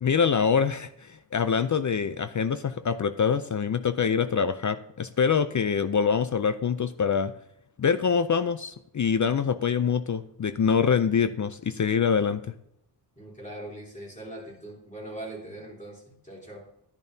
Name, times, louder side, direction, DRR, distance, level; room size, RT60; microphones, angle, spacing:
voice 1, 0.0-7.3 7.8-12.5, left 6 dB, 45° left, 11 dB, 0.5 m, -25 dB
voice 2, 13.2-16.6, right 1 dB, 15° left, -3 dB, 3.3 m, -41 dB
10.5 x 10.5 x 2.7 m, 0.76 s
wide cardioid pair, 115°, 43 cm